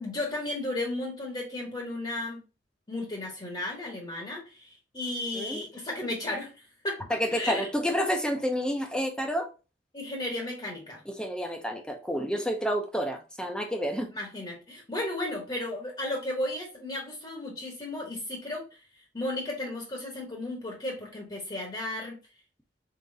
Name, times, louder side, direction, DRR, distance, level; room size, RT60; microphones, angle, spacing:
voice 1, 0.0-2.4 2.9-7.0 7.3-7.7 9.9-11.0 14.1-18.8 19.1-22.2, left 1 dB, 30° left, 1.0 m, -34 dB
voice 2, 7.1-9.5 11.1-14.1, equal, 5° left, 0.6 m, -29 dB
3.9 x 3.9 x 2.6 m
head